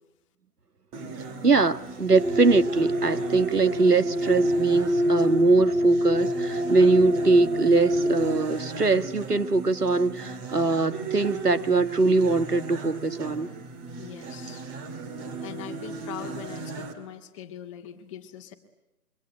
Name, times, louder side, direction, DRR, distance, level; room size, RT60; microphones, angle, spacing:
sound 1, 0.9-16.9, right 5 dB, 15° right, 1.9 m, -36 dB
voice 1, 1.4-13.5, right 3 dB, 85° right, 11 dB, 1.9 m, -22 dB
sound 2, 2.1-8.5, equal, 70° right, 2.7 m, -26 dB
voice 2, 14.0-14.6 15.4-18.5, left 10 dB, 20° left, 5 dB, 2.0 m, -41 dB
27.0 x 23.5 x 9.3 m, 0.93 s
figure-of-eight pair, 145°, 46 cm